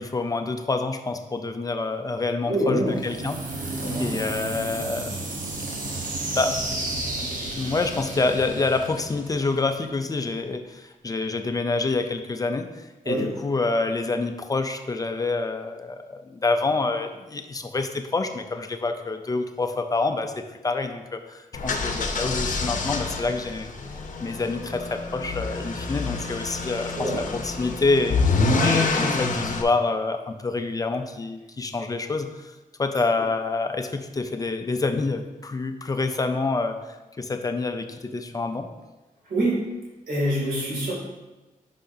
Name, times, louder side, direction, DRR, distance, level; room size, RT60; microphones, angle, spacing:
voice 1, 0.0-5.3 6.3-6.6 7.6-23.7 24.2-28.2 28.6-38.7, left 3 dB, 25° left, 7 dB, 0.4 m, -27 dB
voice 2, 2.5-3.0 3.8-4.1 13.0-13.4 26.9-27.3 39.3-39.7 40.1-40.9, equal, 85° right, -4 dB, 2.6 m, -25 dB
sound 1, 2.9-9.8, right 2 dB, 70° right, 1.1 m, -32 dB
sound 2, 21.5-29.6, left 3 dB, 65° left, 0.8 m, -27 dB
10.0 x 5.7 x 2.7 m, 1.1 s
wide cardioid pair, 165°, 14 cm